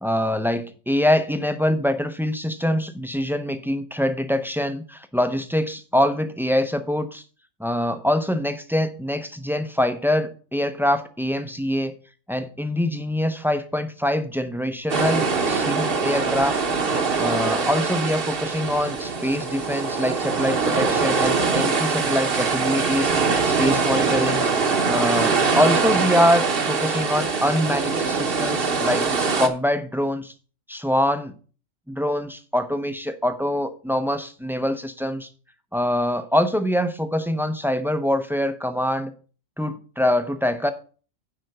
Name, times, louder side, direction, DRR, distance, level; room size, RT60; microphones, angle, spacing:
voice 1, 0.0-7.2 7.6-11.9 12.3-16.6 17.2-23.1 23.5-24.5 24.9-29.1 29.4-30.3 30.7-31.3 31.9-35.3 35.7-39.1 39.6-40.7, left 1 dB, ahead, 0.5 m, -24 dB
sound 1, 14.9-29.5, right 4 dB, 45° right, 1.2 m, -23 dB
10.0 x 4.5 x 6.6 m
omnidirectional pair, 1.4 m